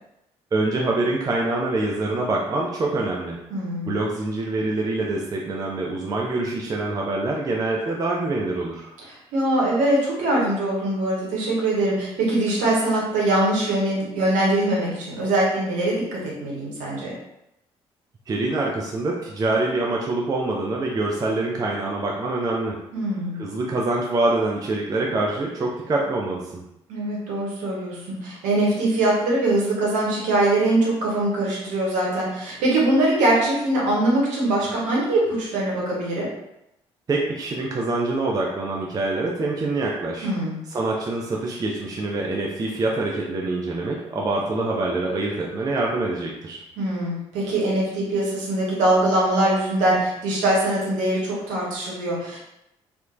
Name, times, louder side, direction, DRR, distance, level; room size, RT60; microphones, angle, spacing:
voice 1, 0.5-3.4 3.9-8.9 18.3-22.8 23.4-26.6 37.1-40.3 40.7-46.6, right 2 dB, 25° right, -2 dB, 0.4 m, -25 dB
voice 2, 3.5-3.9 9.0-17.1 22.9-23.4 26.9-36.3 40.2-40.6 46.8-52.4, right 1 dB, 60° right, -4 dB, 0.9 m, -22 dB
2.9 x 2.1 x 2.4 m, 0.85 s
figure-of-eight pair, 45°, 15 cm